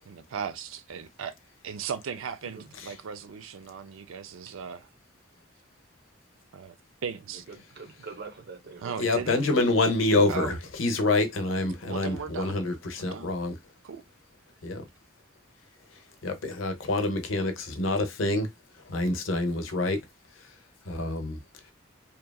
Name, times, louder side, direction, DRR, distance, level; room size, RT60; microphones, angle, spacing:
voice 1, 0.1-1.3 1.6-4.9 6.5-6.7 7.0-7.4 8.8-9.4 10.3-10.6 11.9-12.6 13.0-13.3 13.8-14.0, right 6 dB, 75° right, 0.4 m, -37 dB
voice 2, 7.5-8.9 9.4-10.3, right 4 dB, 55° right, 0.8 m, -45 dB
voice 3, 9.0-13.5 14.6-14.8 16.2-18.5 18.9-20.0 20.9-21.4, left 2 dB, 75° left, 0.7 m, -26 dB
2.9 x 2.3 x 2.2 m
head